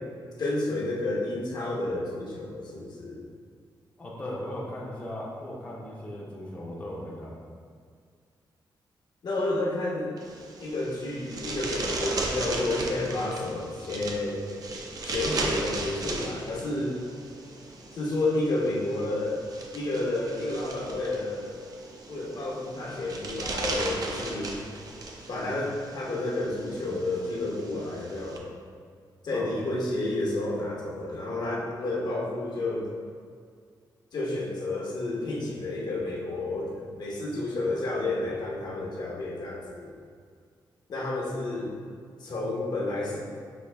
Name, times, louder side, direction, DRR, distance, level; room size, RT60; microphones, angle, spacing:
voice 1, 0.4-3.2 9.2-10.1 10.6-14.4 15.0-17.0 17.9-19.4 19.7-21.5 22.1-24.5 25.3-28.4 29.2-32.9 34.1-39.9 40.9-41.7 42.2-43.2, left 2 dB, 60° left, -4 dB, 0.9 m, -30 dB
voice 2, 4.0-7.3 29.3-29.5, left 1 dB, 15° left, -6 dB, 0.6 m, -37 dB
sound 1, 10.2-28.4, right 2 dB, 50° right, 0.5 m, -37 dB
5.3 x 2.7 x 3.3 m, 2.1 s
wide cardioid pair, 165°, 8 cm